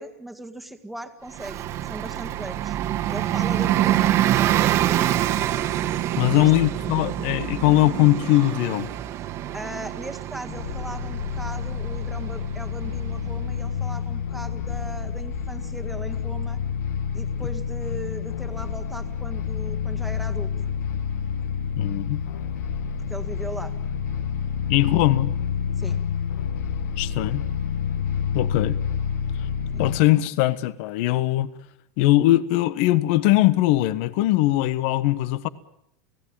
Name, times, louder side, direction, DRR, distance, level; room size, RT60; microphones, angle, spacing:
voice 1, 0.0-2.8 3.1-4.6 6.3-6.5 9.5-16.6 17.1-20.5 23.1-23.7 25.8-26.0 29.7-29.9, right 1 dB, ahead, 1.9 m, -38 dB
Bus, 1.3-13.6, right 12 dB, 30° right, 1.6 m, -26 dB
voice 2, 6.2-8.9 21.8-22.2 24.7-25.3 27.0-27.4 28.3-28.8 29.8-31.5 32.0-35.5, left 16 dB, 50° left, 1.3 m, -20 dB
sound 1, 10.5-30.0, left 7 dB, 75° left, 1.9 m, -28 dB
29.5 x 17.5 x 8.8 m
supercardioid pair, 155°, 9 cm